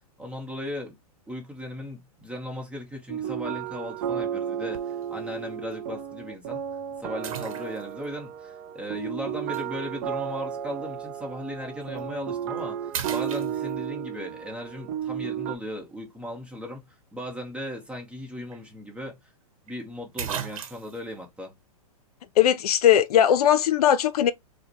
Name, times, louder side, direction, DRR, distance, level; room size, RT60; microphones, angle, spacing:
voice 1, 0.2-1.0 1.3-6.6 7.0-19.2 19.6-21.5, left 1 dB, 5° right, 0.9 m, -37 dB
sound 1, 3.1-15.5, right 9 dB, 30° right, 0.4 m, -33 dB
sound 2, 4.7-5.1 5.7-5.8 7.2-8.1 9.5-9.7 11.8-12.0 12.4-12.6 12.9-14.0 18.1-18.2 18.5-18.6 19.7-19.8 20.2-21.0, right 8 dB, 60° right, 1.0 m, -35 dB
voice 2, 22.4-24.3, left 10 dB, 75° left, 0.5 m, -19 dB
4.7 x 2.2 x 2.8 m
hypercardioid pair, 150°, 19 cm